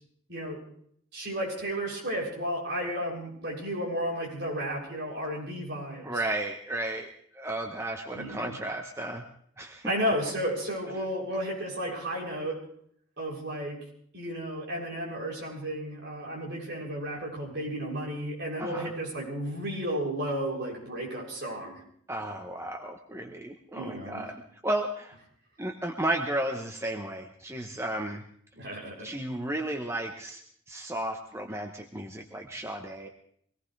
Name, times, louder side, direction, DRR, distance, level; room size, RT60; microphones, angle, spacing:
voice 1, 0.3-0.6 1.1-6.2 8.1-8.6 9.9-12.6 13.2-13.9 14.1-21.8 23.7-24.3 28.5-29.1, equal, 55° right, -3 dB, 7.2 m, -33 dB
voice 2, 6.0-9.2 9.6-9.9 18.6-18.9 22.1-25.1 25.6-28.2 29.0-30.4 30.7-33.1, right 1 dB, 15° right, 3 dB, 1.0 m, -33 dB
24.0 x 18.0 x 3.4 m, 0.64 s
head